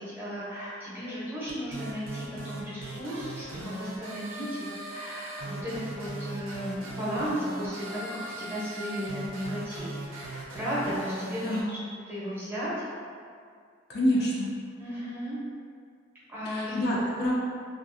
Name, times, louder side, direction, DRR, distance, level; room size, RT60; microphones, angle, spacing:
voice 1, 0.0-11.8 12.1-12.7 14.8-15.4 16.3-16.7, equal, 10° right, -10 dB, 0.7 m, -35 dB
sound 1, 1.5-11.6, right 2 dB, 85° right, 0.5 m, -39 dB
voice 2, 11.4-11.8 13.9-14.5 16.5-17.3, equal, 55° left, -5 dB, 0.4 m, -27 dB
2.4 x 2.4 x 2.5 m, 2.2 s
head